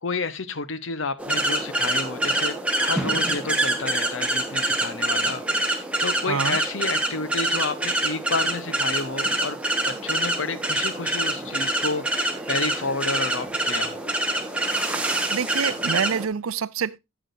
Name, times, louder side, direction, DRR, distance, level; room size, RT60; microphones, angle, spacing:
voice 1, 0.0-9.6 9.9-12.1 12.5-14.0, left 3 dB, 65° left, 0.9 m, -30 dB
sound 1, 1.2-16.3, right 1 dB, 5° right, 1.2 m, -25 dB
voice 2, 6.3-6.6 15.3-17.0, right 6 dB, 80° right, 0.5 m, -26 dB
17.5 x 6.1 x 2.5 m
head